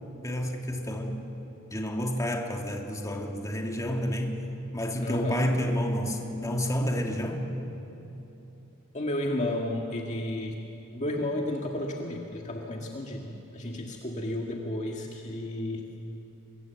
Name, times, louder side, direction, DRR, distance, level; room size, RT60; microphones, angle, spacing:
voice 1, 0.2-1.3 1.7-4.4 4.7-7.5 13.8-13.9, equal, 15° left, 1 dB, 2.3 m, -30 dB
voice 2, 5.0-5.5 8.9-10.6 10.9-15.9, left 1 dB, 35° left, 0 dB, 1.8 m, -32 dB
25.0 x 22.5 x 8.1 m, 3.0 s
head